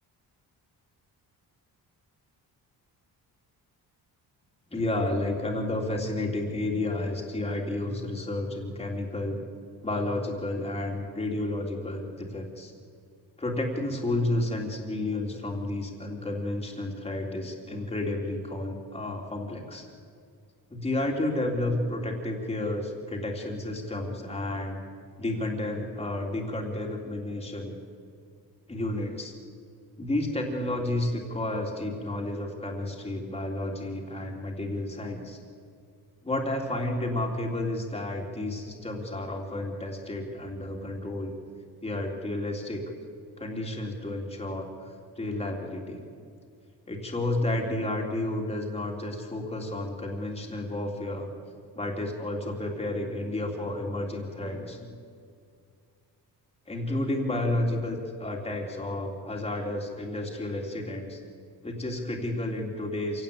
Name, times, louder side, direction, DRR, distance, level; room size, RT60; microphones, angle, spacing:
voice 1, 4.7-9.4 9.8-12.7 13.4-19.9 20.7-24.8 25.2-27.8 28.7-29.3 30.0-35.4 36.2-41.3 41.8-42.8 43.4-46.0 46.9-51.3 51.7-54.9 56.7-61.2 61.6-63.2, left 1 dB, 15° left, 0 dB, 3.4 m, -31 dB
27.0 x 17.5 x 8.8 m, 2.3 s
wide cardioid pair, 180°, 39 cm